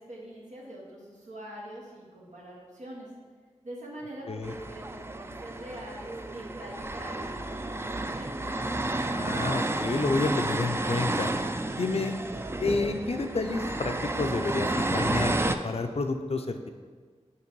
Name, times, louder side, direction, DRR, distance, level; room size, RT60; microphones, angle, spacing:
voice 1, 0.0-3.1 3.6-8.5, right 1 dB, 90° right, -4 dB, 1.3 m, -44 dB
sound 1, 4.4-15.6, right 2 dB, 20° right, 0.3 m, -31 dB
voice 2, 9.1-11.3 11.8-12.1 12.6-16.6, left 3 dB, 55° left, 6 dB, 0.5 m, -29 dB
6.6 x 3.1 x 4.6 m, 1.6 s
wide cardioid pair, 45°, 12 cm